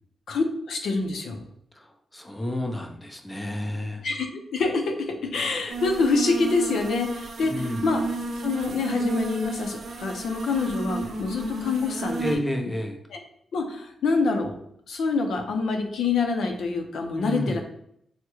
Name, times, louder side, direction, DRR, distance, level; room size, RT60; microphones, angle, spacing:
voice 1, 0.3-1.4 4.0-8.0 8.4-12.4 13.1-13.2 13.5-14.5 14.9-17.6, left 4 dB, 85° left, 4 dB, 0.5 m, -26 dB
voice 2, 1.8-4.1 7.4-7.9 12.2-13.0 17.2-17.6, left 1 dB, 15° left, 4 dB, 0.4 m, -30 dB
sound 1, 5.7-12.4, right 3 dB, 75° right, 0.6 m, -33 dB
3.4 x 2.1 x 3.0 m, 0.70 s
cardioid pair, 95°, 0 cm